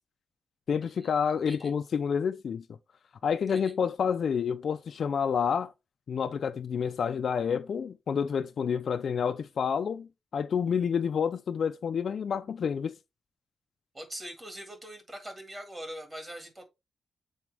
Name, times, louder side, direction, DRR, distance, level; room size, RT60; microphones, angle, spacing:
voice 1, 0.7-2.6 3.2-5.7 6.1-12.9, left 7 dB, 50° left, 0.4 m, -29 dB
voice 2, 13.9-16.6, right 1 dB, 20° right, 1.8 m, -42 dB
7.5 x 4.3 x 3.3 m
wide cardioid pair, 180°, 0 cm